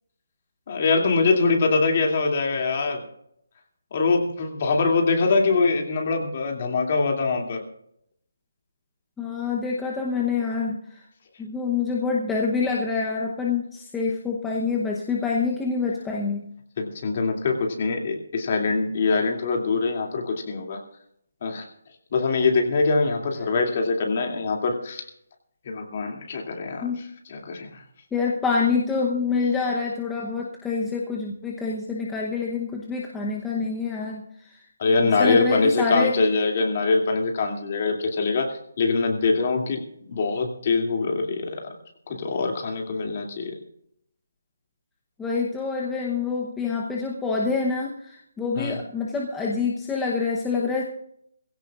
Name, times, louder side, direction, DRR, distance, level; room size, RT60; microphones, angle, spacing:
voice 1, 0.7-3.0 3.9-7.6 16.8-20.8 21.4-21.6 22.1-25.0 25.6-27.8 34.8-41.6 42.1-43.5 48.6-48.8, left 4 dB, 30° left, 2 dB, 2.6 m, -23 dB
voice 2, 9.2-11.0 11.4-16.4 26.8-27.0 28.1-34.6 35.2-36.2 45.2-50.8, left 4 dB, 5° left, -2 dB, 0.9 m, -26 dB
21.5 x 16.0 x 2.5 m, 0.71 s
hypercardioid pair, 175°, 0 cm